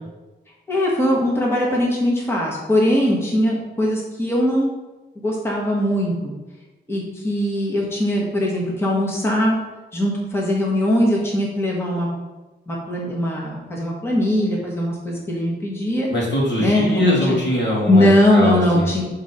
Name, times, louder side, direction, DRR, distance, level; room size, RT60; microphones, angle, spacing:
voice 1, 0.7-4.7 5.2-6.1 6.9-9.6 9.9-12.1 12.7-16.1 16.6-17.4 17.9-19.0, left 1 dB, 10° left, -3 dB, 1.2 m, -20 dB
voice 2, 16.1-18.9, equal, 70° left, -5 dB, 2.4 m, -22 dB
6.0 x 3.9 x 5.6 m, 1.1 s
wide cardioid pair, 145°, 19 cm